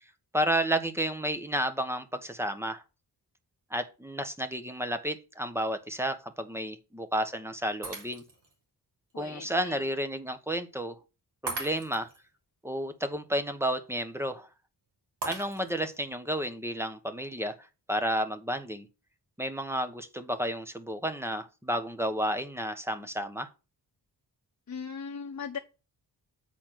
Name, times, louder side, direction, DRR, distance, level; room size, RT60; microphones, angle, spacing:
voice 1, 0.3-2.8 3.7-8.2 9.1-10.9 11.4-12.1 12.6-14.5 15.2-17.5 17.9-18.9 19.4-23.5, right 1 dB, 5° right, 1.2 m, -31 dB
Shatter, 7.8-8.5 9.1-9.2 11.5-12.2 15.2-15.9, right 3 dB, 80° right, 2.8 m, -38 dB
voice 2, 9.1-9.9 24.7-25.6, left 6 dB, 45° left, 1.1 m, -39 dB
8.3 x 4.3 x 5.8 m
cardioid pair, 75°, 41 cm